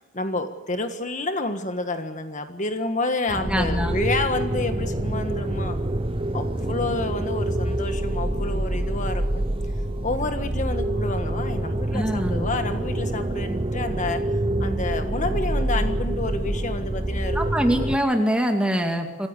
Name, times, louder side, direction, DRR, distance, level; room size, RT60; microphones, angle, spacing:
voice 1, 0.0-5.8 6.3-9.4 10.0-14.2 14.6-17.4, left 2 dB, 35° left, 7 dB, 1.6 m, -29 dB
voice 2, 3.3-4.0 11.9-12.5 17.3-19.3, equal, 5° right, 4 dB, 2.3 m, -24 dB
sound 1, 3.3-18.0, right 1 dB, 25° right, 1.0 m, -26 dB
26.5 x 15.5 x 8.3 m, 1.2 s
head